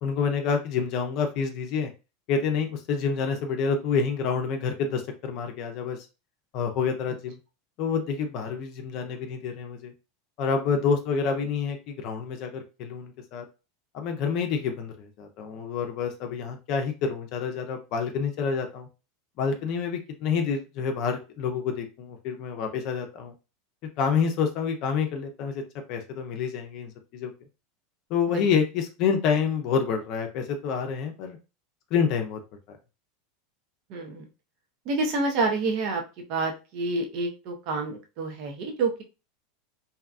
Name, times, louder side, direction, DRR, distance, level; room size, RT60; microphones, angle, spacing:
voice 1, 0.0-1.9 2.3-6.0 6.5-7.4 7.8-9.9 10.4-13.4 13.9-18.9 19.4-23.3 24.0-25.6 25.9-27.3 28.1-31.4 31.9-32.4 32.7-32.8, left 6 dB, 55° left, 4 dB, 0.5 m, -28 dB
voice 2, 33.9-34.3 34.8-36.0 36.3-39.0, right 3 dB, 55° right, 2 dB, 0.8 m, -28 dB
2.7 x 2.2 x 2.5 m, 0.30 s
hypercardioid pair, 110°, 0 cm